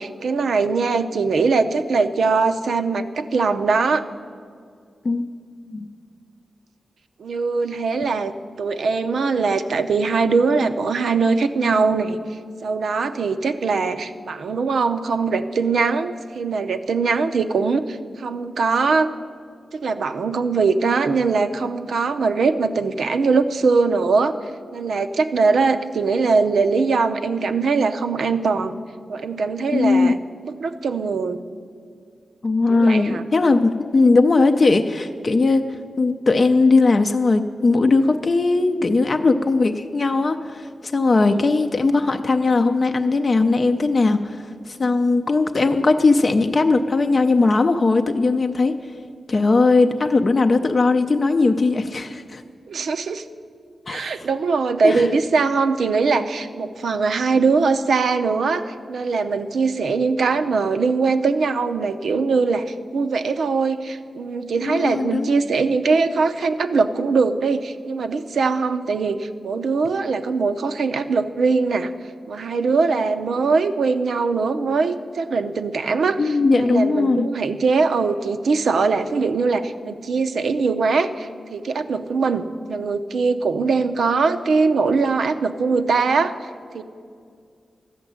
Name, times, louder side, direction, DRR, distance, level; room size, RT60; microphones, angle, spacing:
voice 1, 0.0-4.0 7.2-19.1 19.7-24.4 24.7-28.8 29.1-30.2 30.4-31.4 32.7-33.2 41.1-41.5 52.7-53.2 53.9-71.9 72.3-86.8, right 4 dB, 80° right, 8 dB, 0.7 m, -21 dB
voice 2, 29.7-30.2 32.4-35.6 36.0-48.7 49.3-52.4 53.9-54.0 54.8-55.1 64.7-65.3 76.2-77.3, left 3 dB, 35° left, 5 dB, 0.5 m, -18 dB
13.5 x 7.2 x 10.0 m, 2.2 s
wide cardioid pair, 160°, 0 cm